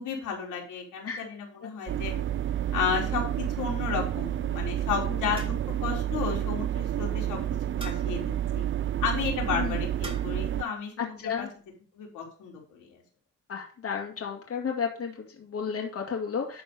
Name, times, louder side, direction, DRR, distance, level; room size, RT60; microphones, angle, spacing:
voice 1, 0.0-2.1 2.7-5.6 5.8-7.4 7.7-8.6 9.0-11.5 12.0-13.0, left 6 dB, 90° left, -1 dB, 3.6 m, -33 dB
sound 1, 1.9-10.6, right 11 dB, 40° right, 0.5 m, -30 dB
sound 2, 5.4-5.9 7.8-8.3 10.0-10.5, right 1 dB, 15° right, 3.3 m, -45 dB
voice 2, 11.0-11.5 13.5-16.6, left 6 dB, 50° left, 0 dB, 2.4 m, -32 dB
11.5 x 4.4 x 5.2 m, 0.41 s
cardioid pair, 90°, 30 cm